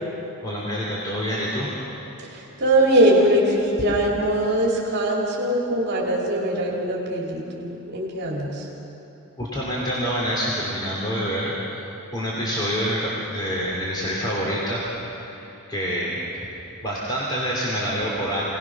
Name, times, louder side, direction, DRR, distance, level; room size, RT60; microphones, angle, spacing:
voice 1, 0.4-1.7 9.4-11.8 12.1-14.8 15.3-16.4 16.8-18.4, equal, 20° left, -6 dB, 3.0 m, -27 dB
voice 2, 2.3-8.7, right 1 dB, 50° right, -3 dB, 3.0 m, -21 dB
25.5 x 18.5 x 6.1 m, 3.0 s
head